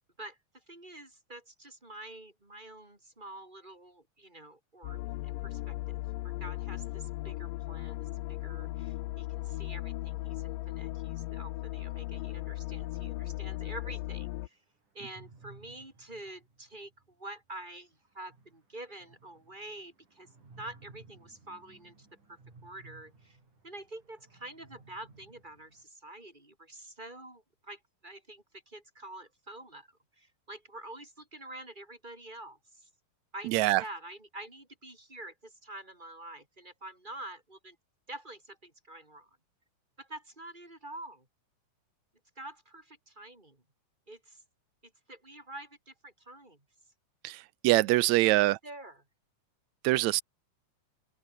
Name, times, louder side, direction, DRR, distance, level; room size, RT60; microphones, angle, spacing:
voice 1, 0.2-5.8 6.2-14.6 14.9-16.9 17.2-20.3 20.6-23.4 23.6-29.9 30.2-32.9 33.3-37.8 38.1-39.3 40.0-41.3 42.4-43.6 44.1-44.4 45.1-46.6 48.2-49.0, right 1 dB, 15° right, 5.9 m, -47 dB
sound 1, 4.8-14.5, left 18 dB, 90° left, 2.4 m, -37 dB
sound 2, 7.9-9.6 10.7-12.6 14.8-17.1 17.4-17.5 17.8-17.9 18.1-25.8, right 3 dB, 65° right, 9.4 m, -58 dB
voice 2, 33.5-33.8 47.2-48.6 49.8-50.2, right 18 dB, 90° right, 1.6 m, -24 dB
open air
omnidirectional pair, 3.9 m